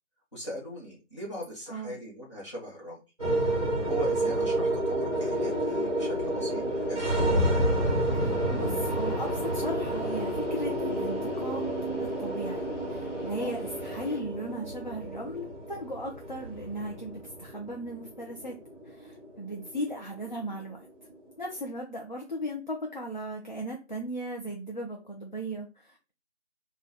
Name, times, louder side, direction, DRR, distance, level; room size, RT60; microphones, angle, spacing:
voice 1, 0.3-3.0 3.9-7.4 13.4-13.5, equal, 25° left, -7 dB, 0.9 m, -39 dB
sound 1, 3.2-21.6, right 1 dB, 30° right, 0.9 m, -30 dB
Fixed-wing aircraft airplane, 5.1-14.2, left 2 dB, 90° left, 0.8 m, -44 dB
voice 2, 8.1-11.7 12.0-18.6 18.8-20.9 21.4-26.1, equal, 45° left, 0 dB, 0.4 m, -37 dB
2.8 x 2.2 x 3.4 m, 0.30 s
figure-of-eight pair, 165°, 35 cm